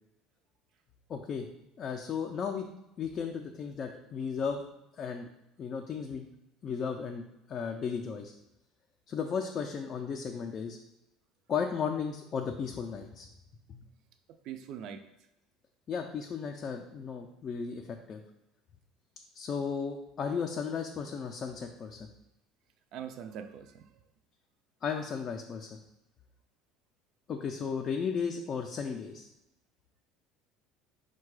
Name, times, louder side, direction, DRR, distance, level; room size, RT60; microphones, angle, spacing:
voice 1, 1.1-1.5 1.8-2.7 3.0-4.6 5.0-5.3 5.6-6.3 6.6-8.3 9.1-10.8 11.5-13.3 13.7-13.8 15.9-18.2 19.3-22.1 24.8-25.8 27.3-29.3, left 6 dB, 35° left, 3 dB, 0.4 m, -35 dB
voice 2, 14.3-15.0 22.9-23.9, right 8 dB, 55° right, 8 dB, 0.3 m, -42 dB
4.6 x 2.2 x 4.7 m, 0.89 s
cardioid pair, 135°, 0 cm